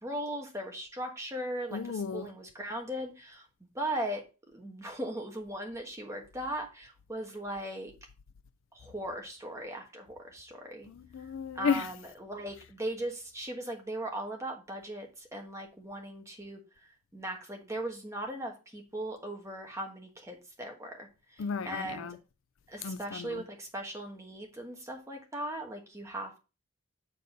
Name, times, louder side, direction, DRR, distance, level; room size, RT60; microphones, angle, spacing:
voice 1, 0.0-1.8 2.1-3.4 3.7-4.2 4.5-7.9 8.7-10.9 11.5-16.6 17.1-21.1 21.6-22.1 22.7-26.4, right 1 dB, 15° right, 1.3 m, -38 dB
voice 2, 1.7-2.3 10.9-11.9 21.4-22.2 22.8-23.4, left 6 dB, 60° left, 0.4 m, -33 dB
6.9 x 4.1 x 5.0 m
head